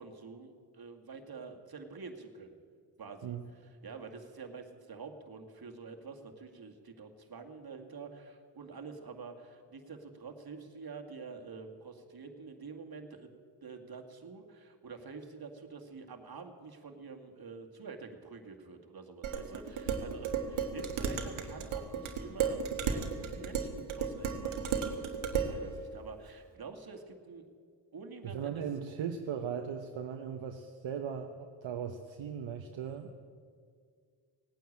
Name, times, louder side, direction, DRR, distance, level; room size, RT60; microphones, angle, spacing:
voice 1, 0.0-2.6 3.0-3.4 3.6-13.3 13.6-22.6 22.9-24.7 25.3-27.5 27.9-28.6, right 4 dB, 50° right, 4 dB, 2.1 m, -47 dB
Dishes pots and pans, 19.2-25.6, right 6 dB, 85° right, 1.5 m, -34 dB
voice 2, 28.2-33.2, right 7 dB, 70° right, 5 dB, 1.0 m, -38 dB
18.0 x 9.3 x 8.7 m, 2.1 s
supercardioid pair, 40°, 48 cm